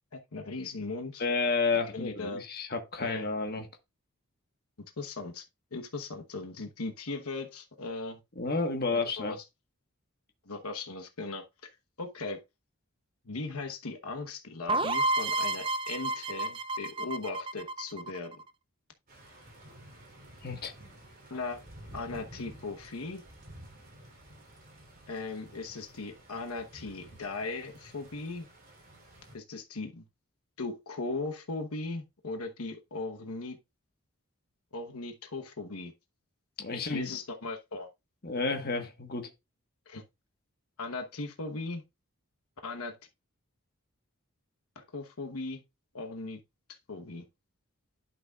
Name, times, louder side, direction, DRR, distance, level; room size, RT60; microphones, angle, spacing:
voice 1, 0.1-1.2 1.9-2.4 3.0-3.3 5.0-5.4 5.7-8.2 9.2-9.4 10.5-11.5 12.0-12.4 13.2-18.4 21.3-21.6 21.9-23.2 25.1-28.5 29.3-30.0 30.6-33.6 34.7-35.9 36.7-37.9 39.9-40.0 40.8-41.8 42.6-43.0 44.7-45.6 45.9-46.4 46.7-47.2, left 3 dB, 90° left, 1.1 m, -38 dB
voice 2, 1.2-3.7 8.4-9.3 20.4-20.7 36.6-37.1 38.2-39.3, left 3 dB, 45° left, 1.3 m, -31 dB
sound 1, 14.7-18.4, right 2 dB, 25° right, 0.4 m, -31 dB
sound 2, 19.1-29.4, right 1 dB, 40° right, 3.2 m, -52 dB
11.0 x 6.2 x 2.4 m
head